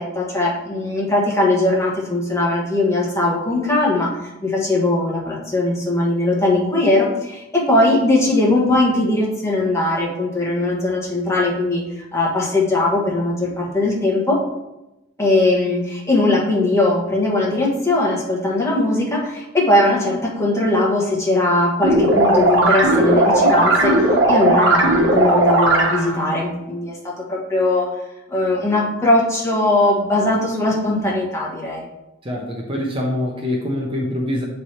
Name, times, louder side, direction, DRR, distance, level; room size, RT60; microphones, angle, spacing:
voice 1, 0.0-14.4 15.2-23.9 24.3-27.9 28.3-31.9, left 2 dB, 15° left, -3 dB, 1.3 m, -19 dB
sound 1, 21.8-26.2, right 2 dB, 60° right, 1.3 m, -16 dB
voice 2, 32.2-34.4, left 1 dB, 25° right, -1 dB, 0.7 m, -24 dB
7.5 x 3.3 x 4.3 m, 0.95 s
head